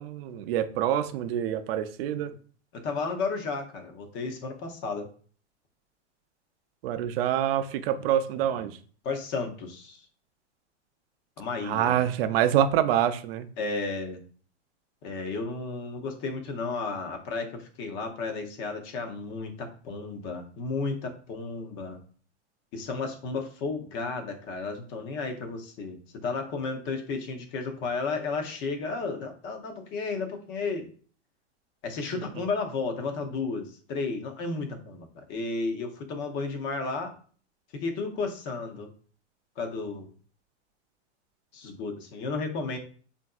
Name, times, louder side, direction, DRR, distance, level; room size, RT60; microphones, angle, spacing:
voice 1, 0.0-2.3 6.8-8.8 11.6-13.5, right 10 dB, 55° right, 11 dB, 0.5 m, -26 dB
voice 2, 2.0-2.4 2.7-5.1 7.9-8.1 8.4-8.7 9.0-10.1 11.4-12.0 13.6-14.2 15.0-22.0 22.7-30.9 31.8-37.1 37.7-38.9 39.6-40.1 41.5-42.8, left 4 dB, 35° left, 4 dB, 0.7 m, -33 dB
3.4 x 2.6 x 2.3 m, 0.43 s
hypercardioid pair, 125°, 35 cm